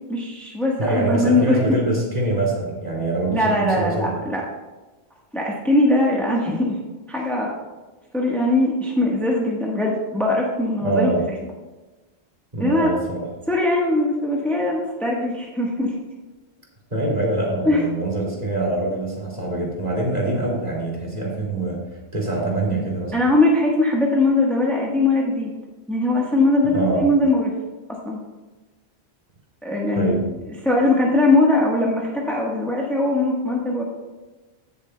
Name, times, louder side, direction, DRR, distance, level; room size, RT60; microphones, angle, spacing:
voice 1, 0.1-1.6 3.3-4.4 5.3-6.8 7.1-7.5 8.1-11.1 12.6-12.9 13.5-15.9 17.6-17.8 23.1-25.5 25.9-27.5 27.9-28.2 29.6-30.1 30.6-33.8, left 2 dB, ahead, -3 dB, 1.1 m, -20 dB
voice 2, 0.8-4.1 10.8-11.2 12.5-13.3 16.9-23.1 26.6-27.1 30.0-30.3, right 2 dB, 40° right, -3 dB, 2.5 m, -24 dB
16.5 x 7.0 x 2.2 m, 1.2 s
omnidirectional pair, 1.1 m